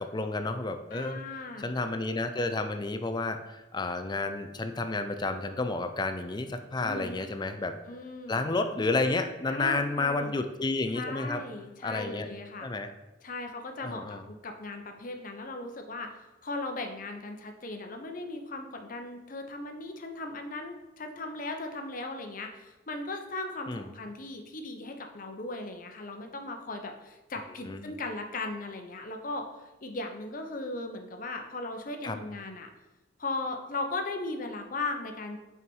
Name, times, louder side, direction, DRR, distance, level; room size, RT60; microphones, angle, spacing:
voice 1, 0.0-1.2 1.6-7.8 8.3-11.4 11.8-12.3 12.6-12.9 13.8-14.2 23.7-23.9 27.7-27.9 32.0-32.2, left 3 dB, 25° left, 8 dB, 0.4 m, -31 dB
voice 2, 0.9-1.7 6.8-7.3 7.9-8.4 9.5-10.3 10.9-12.7 13.2-16.2 16.4-32.7 33.2-35.4, left 2 dB, 50° left, 5 dB, 0.8 m, -37 dB
5.7 x 4.7 x 5.4 m, 1.0 s
head